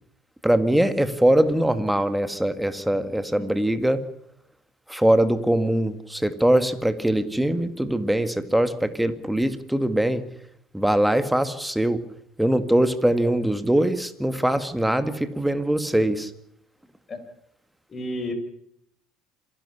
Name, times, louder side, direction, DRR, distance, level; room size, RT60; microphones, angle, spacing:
voice 1, 0.4-4.0 4.9-10.2 10.7-12.0 12.4-16.3, right 1 dB, 5° right, 11 dB, 2.0 m, -22 dB
voice 2, 17.9-18.3, left 1 dB, 30° left, 7 dB, 5.4 m, -31 dB
27.0 x 11.5 x 9.9 m, 0.76 s
hypercardioid pair, 70°, 0 cm